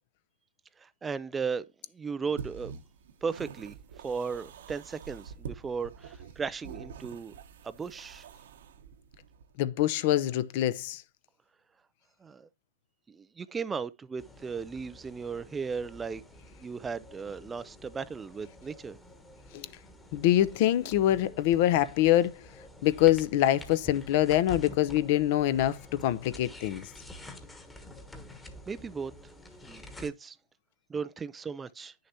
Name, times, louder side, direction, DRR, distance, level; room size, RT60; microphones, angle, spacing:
voice 1, 0.8-1.7 1.9-2.7 3.2-3.7 4.0-7.3 7.6-8.3 12.2-12.5 13.1-16.2 16.6-19.0 28.1-28.3 28.7-29.1 29.6-30.4 30.9-31.9, right 5 dB, 15° right, 0.3 m, -36 dB
sound 1, 2.4-9.5, right 7 dB, 70° right, 1.1 m, -46 dB
voice 2, 9.6-11.0 19.5-19.7 20.1-22.4 22.8-26.8, left 13 dB, 45° left, 0.6 m, -25 dB
sound 2, 14.2-30.1, left 1 dB, 10° left, 1.2 m, -48 dB
9.6 x 6.6 x 2.8 m
hypercardioid pair, 140°, 0 cm